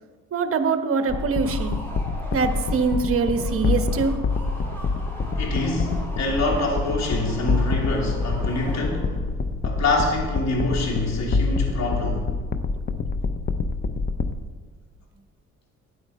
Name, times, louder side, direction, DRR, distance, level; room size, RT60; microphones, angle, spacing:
voice 1, 0.3-1.8 2.3-4.1, right 4 dB, 50° right, 7 dB, 1.1 m, -23 dB
sound 1, 1.0-9.3, equal, 5° left, 3.6 m, -41 dB
sound 2, 1.1-14.4, left 4 dB, 35° left, 0.7 m, -26 dB
voice 2, 5.4-9.1 9.6-12.3, left 2 dB, 60° left, -1 dB, 2.8 m, -26 dB
13.0 x 9.2 x 4.3 m, 1.5 s
cardioid pair, 90°, 30 cm